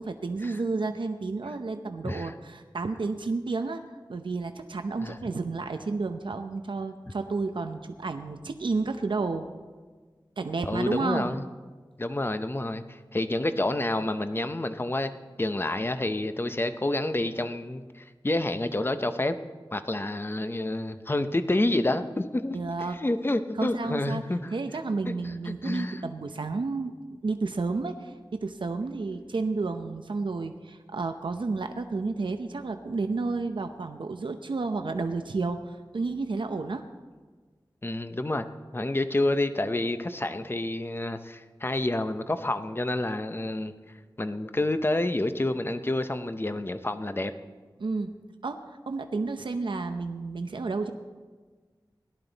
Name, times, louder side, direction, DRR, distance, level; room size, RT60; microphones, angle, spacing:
voice 1, 0.0-3.8 4.1-9.5 10.4-11.3 22.5-23.0 23.6-24.2 24.5-28.1 28.4-36.8 47.8-48.1 48.4-50.9, right 3 dB, 85° right, 7 dB, 0.7 m, -31 dB
voice 2, 10.6-11.4 12.0-19.4 19.7-22.6 23.0-24.5 25.1-25.2 25.5-26.0 37.8-38.5 38.7-43.7 44.2-47.3, left 2 dB, 30° left, 10 dB, 0.7 m, -28 dB
17.5 x 11.5 x 4.0 m, 1.4 s
wide cardioid pair, 70°, 8 cm